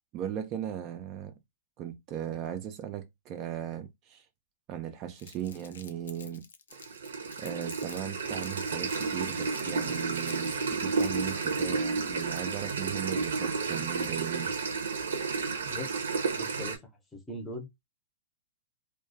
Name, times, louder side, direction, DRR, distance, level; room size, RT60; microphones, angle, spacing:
voice 1, 0.1-1.4 1.8-4.3 4.7-6.5 6.7-6.8 7.4-14.5, right 10 dB, 35° right, 0.3 m, -37 dB
Crumpling crinkling, 5.2-8.0 8.3-12.7, left 6 dB, 85° left, 0.4 m, -50 dB
sound 1, 6.7-16.8, right 4 dB, 90° right, 0.5 m, -32 dB
voice 2, 15.7-16.0 16.3-16.8 17.1-17.7, left 1 dB, 10° left, 0.6 m, -40 dB
2.3 x 2.2 x 2.5 m
hypercardioid pair, 140°, 0 cm